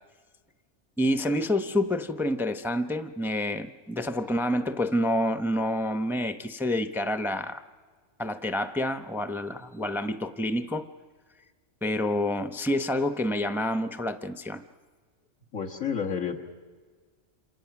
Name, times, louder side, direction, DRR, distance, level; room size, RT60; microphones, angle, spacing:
voice 1, 1.0-7.6 8.2-10.9 11.8-14.6, left 1 dB, ahead, 9 dB, 0.6 m, -28 dB
voice 2, 15.5-16.4, left 7 dB, 75° left, 1 dB, 2.0 m, -30 dB
28.0 x 27.5 x 6.0 m, 1.5 s
omnidirectional pair, 1.4 m